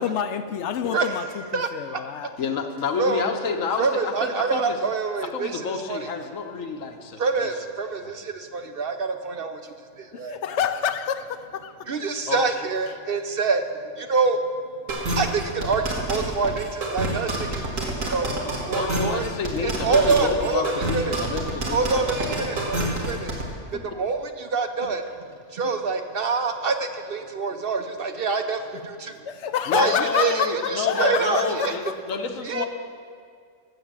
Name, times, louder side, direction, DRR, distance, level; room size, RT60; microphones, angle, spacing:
voice 1, 0.0-2.4 10.1-11.7 29.3-32.0, left 8 dB, 70° left, 11 dB, 0.8 m, -27 dB
voice 2, 2.4-4.8 5.2-7.5 8.0-8.2 12.3-12.5 18.7-22.4 29.7-32.7, left 5 dB, 85° left, 4 dB, 1.5 m, -30 dB
voice 3, 3.8-5.6 5.9-6.0 7.2-9.6 10.0-10.4 11.9-13.6 13.9-14.4 15.2-18.3 18.6-19.3 19.6-21.2 21.7-23.4 23.9-25.0 25.5-29.2 29.7-31.7 32.5-32.7, right 4 dB, 55° right, 7 dB, 0.8 m, -26 dB
sound 1, 14.9-23.4, right 1 dB, 80° right, 2.3 m, -27 dB
13.5 x 7.6 x 7.4 m, 2.1 s
omnidirectional pair, 1.3 m